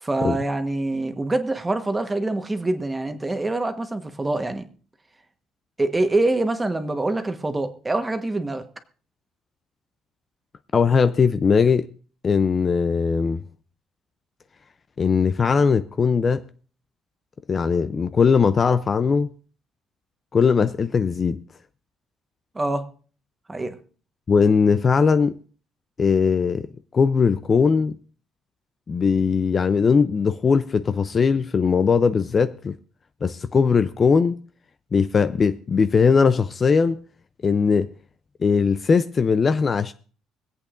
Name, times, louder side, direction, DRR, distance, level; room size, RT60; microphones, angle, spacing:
voice 1, 0.0-4.7 5.8-8.6 22.5-22.9 23.5-23.7, right 2 dB, 15° right, 1.1 m, -25 dB
voice 2, 10.7-11.9 12.2-13.4 15.0-16.4 17.5-19.3 20.3-21.4 24.3-25.4 26.0-28.0 28.9-32.8 33.2-34.4 34.9-37.0 37.4-37.9 38.4-39.9, left 5 dB, 30° left, 0.4 m, -19 dB
25.0 x 8.3 x 2.5 m
cardioid pair, 130°, 0 cm